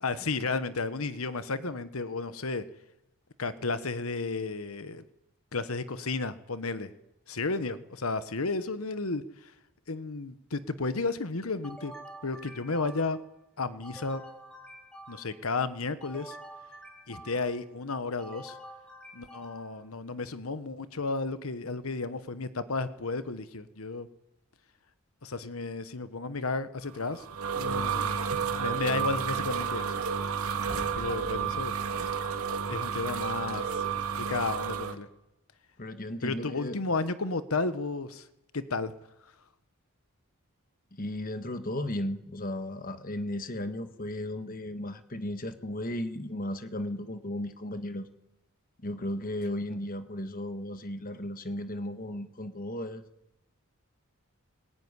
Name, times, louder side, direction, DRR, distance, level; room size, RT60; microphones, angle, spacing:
voice 1, 0.0-2.6 3.4-5.0 5.5-6.9 7.3-9.5 9.9-11.9 12.2-13.2 13.6-14.2 15.1-16.4 17.1-18.6 19.1-24.1 25.2-27.2 27.6-28.2 28.6-29.9 31.0-31.7 32.0-32.3 32.7-33.8 34.2-35.1 36.2-38.3 38.5-38.9, left 3 dB, 80° left, 12 dB, 1.2 m, -33 dB
sound 1, 11.6-13.3 13.8-15.5 16.0-17.6 18.2-19.9, right 1 dB, 5° left, 3.2 m, -48 dB
sound 2, 26.9-34.9, right 6 dB, 85° right, 2.3 m, -31 dB
voice 2, 35.8-36.7 40.9-48.1 48.8-53.0, left 1 dB, 40° left, 9 dB, 1.5 m, -35 dB
21.5 x 20.0 x 9.8 m, 0.90 s
head